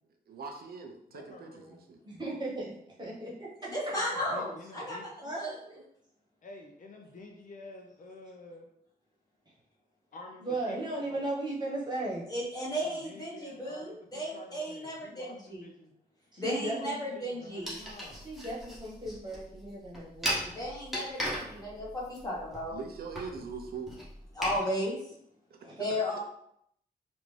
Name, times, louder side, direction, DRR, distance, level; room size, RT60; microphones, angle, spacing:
voice 1, 0.3-2.0 22.7-24.0 25.5-25.6 25.9-26.0, right 5 dB, 70° right, 4 dB, 0.5 m, -42 dB
voice 2, 1.1-1.8 4.0-5.1 6.4-8.7 10.1-11.0 12.8-15.9 16.6-18.3, left 2 dB, 55° left, 2 dB, 0.6 m, -49 dB
voice 3, 2.0-2.7 3.0-3.5 5.2-5.5 10.4-12.2 16.3-17.0 18.2-20.5 25.6-25.8, right 2 dB, 25° right, -5 dB, 1.1 m, -36 dB
voice 4, 3.7-5.5 12.3-15.7 16.4-17.8 20.5-22.8 24.3-25.0 25.8-26.2, equal, 20° left, -6 dB, 1.2 m, -34 dB
sound 1, 17.6-24.6, equal, ahead, 1.0 m, -38 dB
3.4 x 2.5 x 3.2 m, 0.72 s
wide cardioid pair, 150°, 16 cm